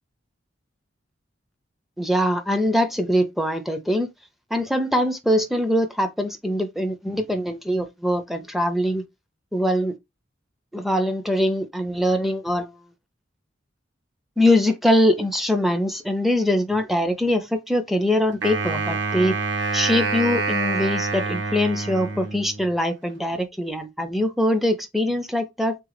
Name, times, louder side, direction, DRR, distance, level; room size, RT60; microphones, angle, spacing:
voice 1, 2.0-4.1 4.5-9.0 9.5-9.9 10.7-12.7 14.4-19.4 19.7-25.8, left 1 dB, ahead, 0.5 m, -22 dB
Wind instrument woodwind instrument, 18.4-22.7, right 3 dB, 65° right, 1.2 m, -26 dB
3.7 x 3.7 x 3.2 m
head